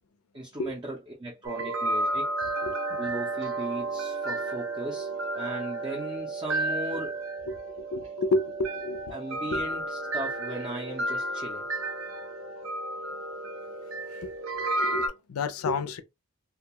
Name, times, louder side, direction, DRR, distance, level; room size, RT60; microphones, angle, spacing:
voice 1, 0.3-2.3 3.0-7.1 9.1-11.6, right 1 dB, 20° right, 0.5 m, -37 dB
sound 1, 1.4-15.1, right 2 dB, 65° right, 0.6 m, -32 dB
voice 2, 7.9-9.0 9.5-9.6 14.2-14.3 14.8-16.0, left 2 dB, 90° left, 0.4 m, -29 dB
2.2 x 2.2 x 2.7 m
head